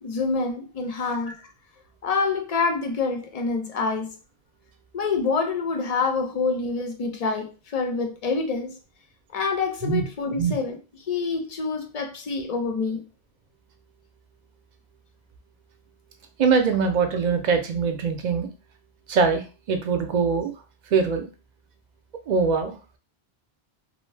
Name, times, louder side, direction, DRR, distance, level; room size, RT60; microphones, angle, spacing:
voice 1, 0.0-1.5 2.0-4.2 4.9-8.8 9.3-10.8 11.1-13.0, left 4 dB, 55° left, 0.4 m, -26 dB
voice 2, 16.4-18.5 19.1-20.5 20.9-21.3 22.3-23.0, right 5 dB, 55° right, 0.5 m, -23 dB
2.5 x 2.0 x 3.1 m
omnidirectional pair, 1.0 m